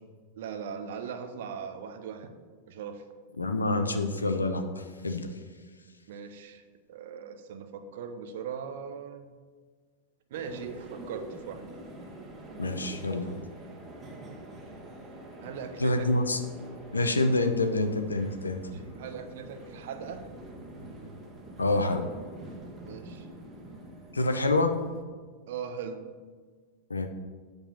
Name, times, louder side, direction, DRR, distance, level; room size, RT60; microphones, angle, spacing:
voice 1, 0.4-2.4 2.7-3.0 6.1-6.6 6.9-9.3 10.3-11.7 15.4-16.1 18.7-20.3 22.8-23.3 25.5-26.1, right 7 dB, 55° right, 8 dB, 0.8 m, -39 dB
voice 2, 3.4-5.3 12.6-13.3 15.8-16.4 16.9-18.6 21.6-22.1 24.1-24.7 26.9-27.1, left 2 dB, 80° left, 7 dB, 0.8 m, -27 dB
sound 1, 10.3-25.0, right 1 dB, 20° right, 1.4 m, -45 dB
8.4 x 5.3 x 5.8 m, 1.5 s
figure-of-eight pair, 90°, 0 cm